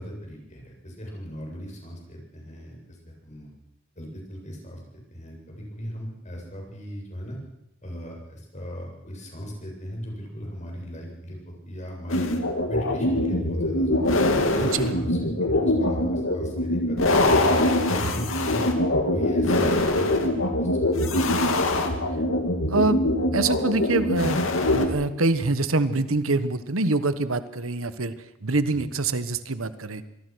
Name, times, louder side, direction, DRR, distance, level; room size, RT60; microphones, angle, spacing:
voice 1, 0.0-3.0 3.2-3.5 4.0-4.8 5.1-7.4 7.8-12.3 12.7-17.3 17.8-18.6 19.1-21.1 28.7-28.8, equal, 35° left, 0 dB, 7.8 m, -37 dB
sound 1, 12.1-24.9, left 1 dB, 75° left, 2.8 m, -23 dB
voice 2, 14.6-14.9 22.7-23.0 23.3-30.0, right 3 dB, 85° right, 13 dB, 1.3 m, -25 dB
26.0 x 19.5 x 6.3 m, 0.86 s
head